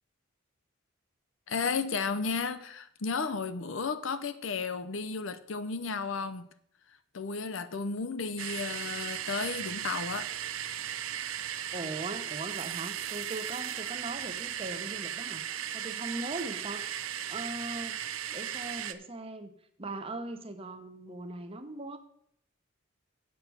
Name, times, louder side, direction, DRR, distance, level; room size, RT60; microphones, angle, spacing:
voice 1, 1.5-6.5 7.1-10.3, left 4 dB, 65° left, 0.7 m, -33 dB
sound 1, 8.4-18.9, right 10 dB, 80° right, 0.6 m, -36 dB
voice 2, 11.7-15.4 15.7-16.9 17.3-18.0 18.3-19.5 19.8-22.0, right 2 dB, 30° right, 0.9 m, -39 dB
8.6 x 6.6 x 5.9 m
head